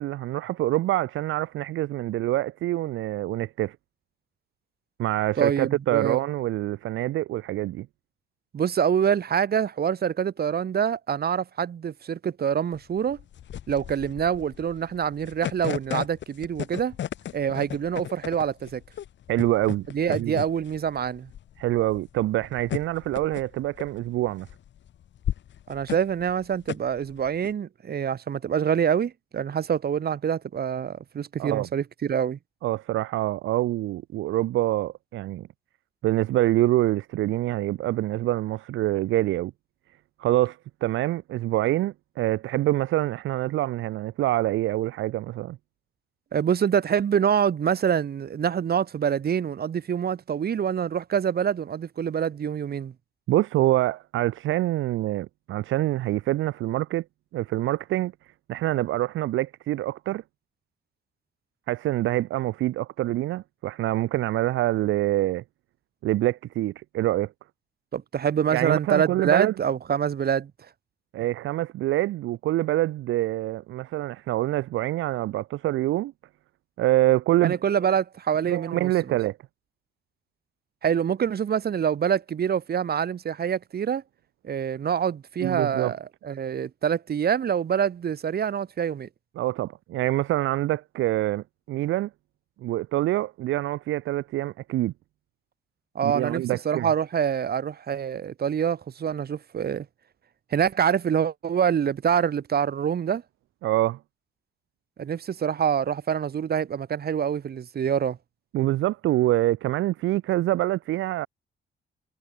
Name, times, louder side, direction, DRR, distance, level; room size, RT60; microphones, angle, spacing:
voice 1, 0.0-3.8 5.0-7.9 19.3-20.4 21.6-24.5 31.4-31.7 32.6-35.5 36.0-39.5 40.2-45.6 53.3-57.0 57.3-60.2 61.7-65.4 66.0-67.3 68.5-69.5 71.1-76.1 76.8-77.5 78.5-79.4 85.4-85.9 89.4-92.1 92.6-94.9 96.0-96.9 103.6-104.0 108.5-111.3, right 15 dB, 80° right, 0.8 m, -25 dB
voice 2, 5.4-6.2 8.5-13.2 13.7-16.9 17.3-18.8 19.9-21.3 25.7-32.4 46.3-52.9 67.9-70.5 77.4-79.2 80.8-84.0 84.4-89.1 95.9-99.9 100.5-103.2 105.0-108.2, right 8 dB, 50° right, 2.6 m, -26 dB
sound 1, 12.7-27.5, left 10 dB, 65° left, 2.6 m, -35 dB
cardioid pair, 90°, 20 cm